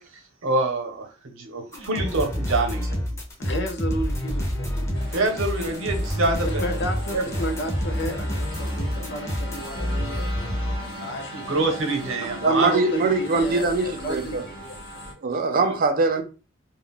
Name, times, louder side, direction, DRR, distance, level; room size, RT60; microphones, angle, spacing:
voice 1, 0.0-3.0 5.1-6.6 7.1-7.3 11.3-12.8 15.6-15.8, right 2 dB, 75° right, 0.8 m, -26 dB
sound 1, 1.7-10.8, equal, 15° left, 0.6 m, -28 dB
voice 2, 3.4-5.1 6.4-11.8 12.2-14.8, equal, 60° left, 0.6 m, -33 dB
sound 2, 4.9-15.1, equal, 85° left, 1.1 m, -38 dB
voice 3, 12.4-14.5 15.2-16.2, right 3 dB, 45° right, 0.4 m, -22 dB
2.3 x 2.0 x 3.6 m
head